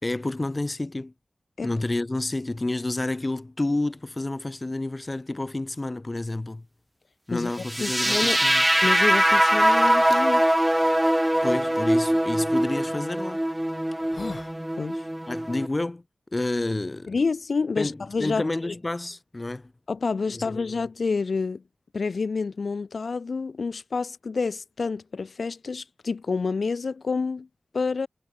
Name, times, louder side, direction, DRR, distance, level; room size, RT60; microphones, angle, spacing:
voice 1, 0.0-1.1 1.6-6.6 7.3-8.6 11.4-13.4 15.3-16.0 16.3-17.1 17.8-19.7 20.3-20.7, left 2 dB, 30° left, 4.0 m, -29 dB
sound 1, 7.6-15.7, right 1 dB, 10° right, 1.1 m, -22 dB
voice 2, 7.8-8.4 8.8-10.4 14.8-15.0 17.1-18.7 19.9-21.6 21.9-27.5 27.7-28.1, left 4 dB, 75° left, 4.5 m, -28 dB
sound 2, 9.1-10.2 10.9-11.0 12.7-12.9 13.4-13.5 13.9-14.6, left 3 dB, 50° left, 7.3 m, -40 dB
wide cardioid pair, 95°, 0 cm